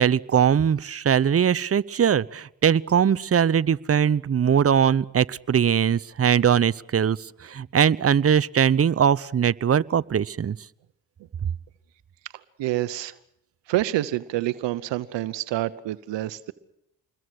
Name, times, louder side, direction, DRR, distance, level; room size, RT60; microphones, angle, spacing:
voice 1, 0.0-10.6, right 8 dB, 30° right, 0.8 m, -21 dB
voice 2, 12.6-13.2 13.7-16.5, right 15 dB, 75° right, 1.0 m, -27 dB
27.0 x 21.5 x 6.5 m
supercardioid pair, 50°, 44 cm